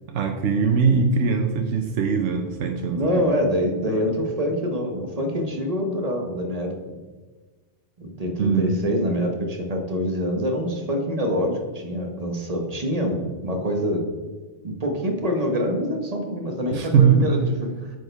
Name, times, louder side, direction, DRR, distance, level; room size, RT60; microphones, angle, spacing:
voice 1, 0.1-3.3 8.4-8.8 16.7-17.3, right 5 dB, 85° right, 4 dB, 1.0 m, -21 dB
voice 2, 2.9-7.0 8.0-14.1 14.6-17.5, equal, 35° right, 3 dB, 1.1 m, -25 dB
8.9 x 6.4 x 3.3 m, 1.3 s
omnidirectional pair, 1.2 m